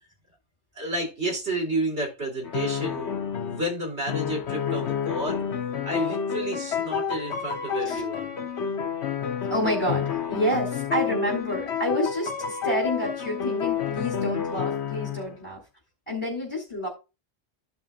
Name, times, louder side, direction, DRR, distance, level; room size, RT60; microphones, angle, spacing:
voice 1, 0.7-5.4 5.8-8.4, right 1 dB, 75° right, -1 dB, 3.2 m, -31 dB
sound 1, 2.4-3.7 4.1-15.3, left 7 dB, 75° left, 1.1 m, -29 dB
voice 2, 9.5-15.6 16.1-16.9, equal, 25° left, -3 dB, 3.2 m, -29 dB
14.5 x 5.5 x 2.4 m, 0.29 s
omnidirectional pair, 1.1 m